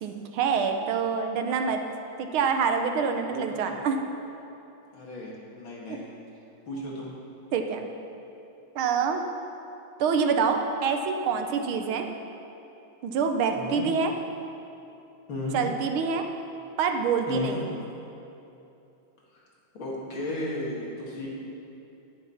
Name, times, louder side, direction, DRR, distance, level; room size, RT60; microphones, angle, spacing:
voice 1, 0.0-1.8 2.2-4.0 5.9-6.0 7.5-7.9 8.7-9.2 10.0-12.1 13.0-14.1 15.5-16.2 16.8-17.7, right 5 dB, 80° right, 5 dB, 1.7 m, -26 dB
voice 2, 3.1-3.8 4.9-6.1 6.7-7.1 13.5-13.9 15.3-15.6 17.3-17.6 19.3-19.4 19.7-21.3, left 1 dB, 70° left, -4 dB, 2.9 m, -35 dB
10.5 x 10.5 x 5.8 m, 2.8 s
omnidirectional pair, 2.3 m